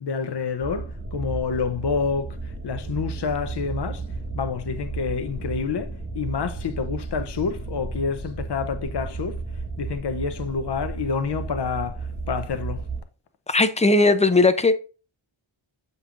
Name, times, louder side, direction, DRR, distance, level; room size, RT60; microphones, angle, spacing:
voice 1, 0.0-4.1 4.3-12.8, left 5 dB, 55° left, 0.7 m, -28 dB
sound 1, 0.6-13.0, right 3 dB, 30° right, 1.4 m, -33 dB
voice 2, 13.5-14.7, left 3 dB, 15° left, 0.5 m, -18 dB
7.0 x 5.4 x 2.5 m
wide cardioid pair, 70°, 49 cm